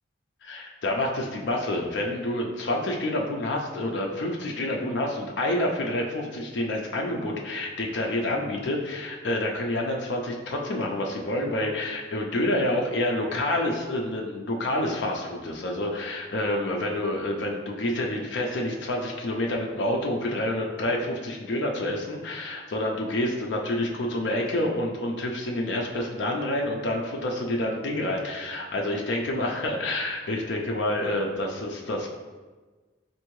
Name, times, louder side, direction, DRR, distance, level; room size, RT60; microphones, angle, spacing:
voice 1, 0.4-32.1, left 1 dB, 65° left, 0 dB, 0.4 m, -28 dB
4.5 x 2.6 x 3.0 m, 1.3 s
head